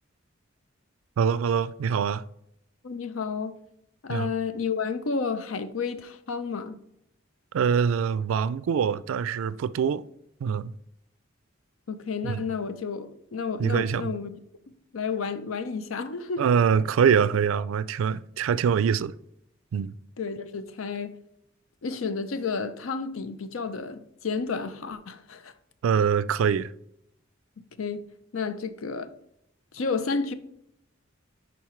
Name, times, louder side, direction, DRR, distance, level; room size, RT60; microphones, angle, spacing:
voice 1, 1.2-2.2 4.1-4.3 7.5-10.0 10.4-10.7 12.2-12.5 13.6-14.1 16.4-19.1 19.7-19.9 25.8-26.7, right 7 dB, 80° right, 0.3 m, -24 dB
voice 2, 2.8-3.5 4.0-6.8 11.9-14.3 14.9-16.4 20.2-21.1 21.8-25.5 27.8-28.0 28.3-29.1 29.7-30.3, left 5 dB, 85° left, 0.6 m, -31 dB
10.5 x 4.0 x 3.1 m
head